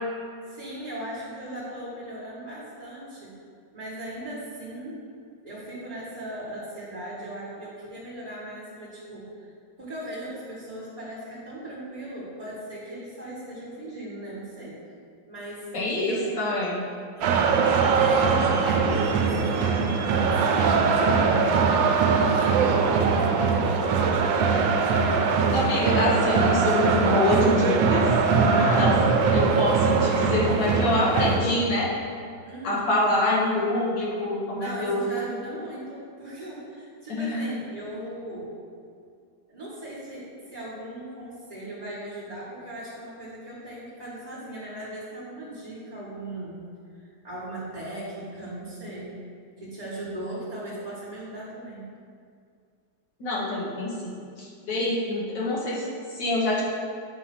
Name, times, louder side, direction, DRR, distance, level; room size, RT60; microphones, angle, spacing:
voice 1, 0.5-3.4 3.7-5.0 5.4-9.5 9.8-14.8 15.3-15.7 16.0-16.4 17.1-21.4 21.7-24.5 32.4-33.0 34.5-38.6 39.5-46.6 46.9-49.2 49.6-52.0, right 1 dB, 25° right, -12 dB, 1.3 m, -38 dB
voice 2, 15.7-16.8 25.5-28.1 28.4-28.9 29.3-31.9 32.6-35.0 37.1-37.5 53.2-54.1 54.4-56.6, left 2 dB, 70° left, -6 dB, 1.8 m, -26 dB
sound 1, 17.2-31.4, right 5 dB, 80° right, 1.3 m, -21 dB
8.2 x 2.7 x 5.8 m, 2.3 s
omnidirectional pair, 2.0 m